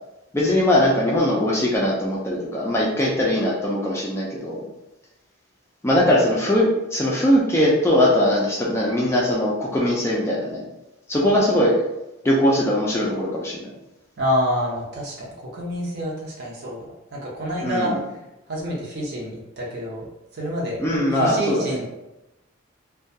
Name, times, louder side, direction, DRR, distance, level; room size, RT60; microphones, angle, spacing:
voice 1, 0.3-4.6 5.8-10.6 11.1-11.8 12.2-13.7 17.6-18.0 20.8-21.8, left 1 dB, 15° left, -4 dB, 0.3 m, -20 dB
voice 2, 14.2-16.8 17.1-18.0 18.5-20.0 20.3-20.8 21.1-21.9, equal, 50° right, -4 dB, 0.7 m, -27 dB
2.2 x 2.2 x 2.7 m, 0.94 s
head